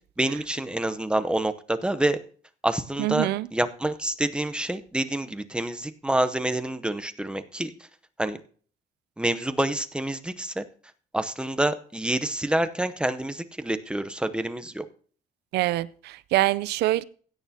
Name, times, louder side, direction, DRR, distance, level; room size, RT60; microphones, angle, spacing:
voice 1, 0.2-2.2 2.6-7.7 8.2-8.4 9.2-10.7 11.1-14.8, right 1 dB, 5° right, 0.7 m, -27 dB
voice 2, 3.0-3.5 15.5-17.0, right 16 dB, 75° right, 0.5 m, -25 dB
16.5 x 9.2 x 2.8 m
cardioid pair, 110°, 17 cm